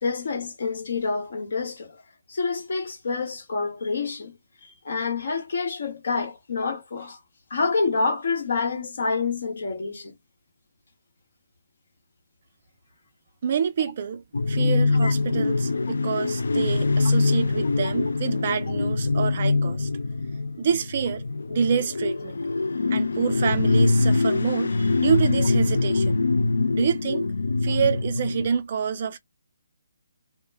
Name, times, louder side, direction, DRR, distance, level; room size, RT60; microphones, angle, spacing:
voice 1, 0.0-2.0 2.3-4.3 4.6-7.2 7.5-10.1 15.0-15.1 27.7-27.8, left 4 dB, 45° left, 0.9 m, -27 dB
voice 2, 13.4-19.9 20.6-22.4 22.9-26.2 26.7-27.3 27.6-29.2, right 7 dB, 30° right, 0.4 m, -27 dB
sound 1, 14.3-28.5, left 3 dB, 70° left, 0.3 m, -23 dB
2.1 x 2.1 x 3.3 m
hypercardioid pair, 175°, 0 cm